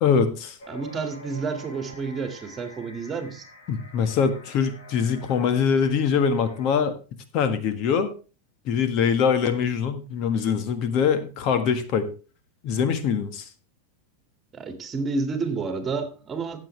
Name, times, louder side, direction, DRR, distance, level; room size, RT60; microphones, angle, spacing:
voice 1, 0.0-0.6 3.7-6.9 7.3-8.1 8.6-12.1 12.6-13.5, left 6 dB, 50° left, 10 dB, 1.5 m, -23 dB
sound 1, 0.6-6.7, equal, 70° left, 4.0 m, -46 dB
voice 2, 0.7-3.5 14.5-16.6, right 4 dB, 25° right, 7 dB, 2.1 m, -30 dB
15.0 x 7.4 x 3.3 m, 0.34 s
hypercardioid pair, 105°, 0 cm